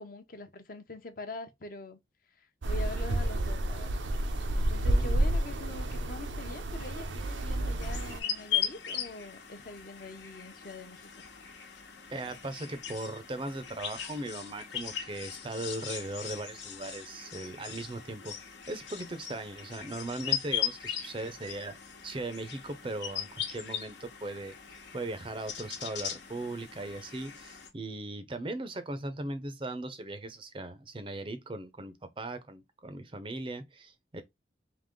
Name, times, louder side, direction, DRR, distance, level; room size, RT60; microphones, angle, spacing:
voice 1, 0.0-2.0 2.3-4.0 4.5-11.1, left 2 dB, 50° left, 0.7 m, -44 dB
sound 1, 2.6-8.2, right 1 dB, 90° right, 0.7 m, -30 dB
voice 2, 4.8-5.2 12.1-18.3 18.7-21.8 22.0-24.5 24.9-34.2, right 2 dB, 30° right, 0.5 m, -38 dB
sound 2, 7.8-27.7, left 10 dB, 80° left, 1.1 m, -39 dB
3.7 x 2.9 x 3.6 m
head